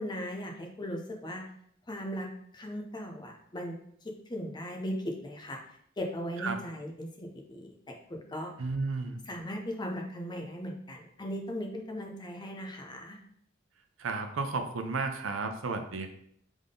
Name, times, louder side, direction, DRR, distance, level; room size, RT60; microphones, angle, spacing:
voice 1, 0.0-1.4 1.9-3.8 4.3-5.6 6.0-7.7 8.1-8.5 9.3-13.2, equal, 25° left, 2 dB, 0.7 m, -38 dB
voice 2, 8.6-9.2 14.0-16.1, right 4 dB, 90° right, 6 dB, 0.6 m, -33 dB
3.7 x 3.6 x 3.7 m, 0.66 s
head